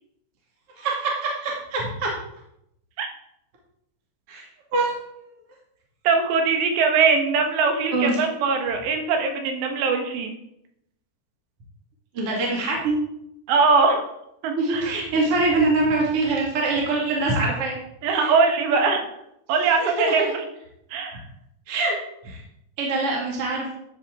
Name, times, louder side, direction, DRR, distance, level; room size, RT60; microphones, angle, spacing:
voice 1, 0.8-2.1 4.3-4.5 4.7-5.0 7.9-8.2 12.1-13.0 14.6-17.8 18.1-18.3 19.8-20.3 21.7-22.0 22.2-22.4 22.8-23.7, right 2 dB, 40° right, -2 dB, 2.4 m, -24 dB
voice 2, 6.1-10.4 13.5-14.0 14.4-14.9 18.0-19.1 19.5-20.3 20.9-21.2, right 4 dB, 85° right, 4 dB, 3.7 m, -21 dB
13.0 x 8.9 x 3.8 m, 0.79 s
omnidirectional pair, 4.9 m